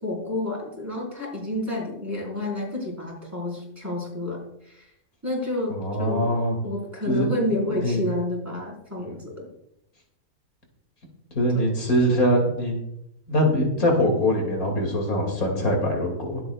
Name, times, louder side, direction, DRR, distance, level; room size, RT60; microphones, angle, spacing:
voice 1, 0.0-4.9 5.2-6.3 6.6-9.5 11.5-11.6, left 1 dB, 10° right, -4 dB, 4.9 m, -30 dB
voice 2, 5.7-6.6 7.1-7.3 7.7-8.0 11.3-12.8 13.3-16.4, equal, 90° left, 1 dB, 3.1 m, -23 dB
23.5 x 8.4 x 2.4 m, 0.82 s
omnidirectional pair, 1.5 m